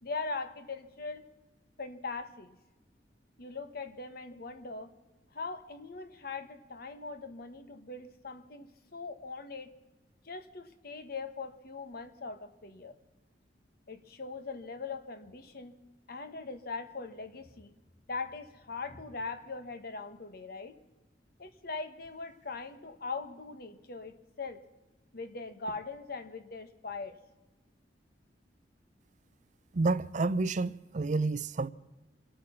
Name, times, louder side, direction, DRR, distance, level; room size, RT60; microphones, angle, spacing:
voice 1, 0.0-1.2 1.8-2.6 3.4-4.9 5.3-9.7 10.2-12.9 13.9-15.8 16.1-17.7 18.1-20.8 21.4-24.6 25.1-27.2, left 4 dB, 55° left, 1.4 m, -41 dB
voice 2, 29.7-31.7, right 3 dB, 45° right, 0.5 m, -29 dB
26.5 x 9.0 x 5.7 m
head